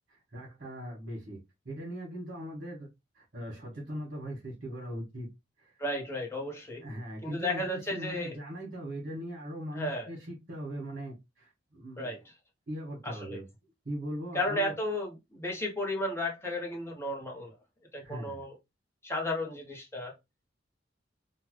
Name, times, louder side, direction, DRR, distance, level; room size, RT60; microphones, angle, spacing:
voice 1, 0.1-1.4 1.6-2.9 3.1-5.3 5.6-5.8 6.8-12.2 12.7-13.5 13.8-14.7 18.0-18.4, equal, 50° right, 1.5 m, -40 dB
voice 2, 5.8-6.8 7.2-8.4 9.7-10.1 12.0-12.2 13.0-13.4 14.3-17.6 17.9-18.5 19.0-20.1, left 1 dB, 15° left, 0.9 m, -33 dB
3.2 x 2.2 x 3.1 m
head